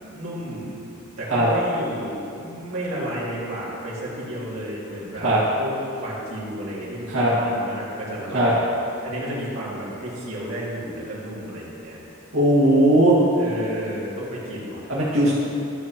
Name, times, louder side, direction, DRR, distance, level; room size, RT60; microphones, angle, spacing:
voice 1, 0.0-5.3 5.6-8.7 9.0-12.0 13.4-14.9 15.2-15.3, right 1 dB, 70° right, -7 dB, 2.1 m, -32 dB
voice 2, 12.3-13.2 14.9-15.3, right 1 dB, 85° right, -9 dB, 1.8 m, -18 dB
12.5 x 6.8 x 2.9 m, 2.8 s
head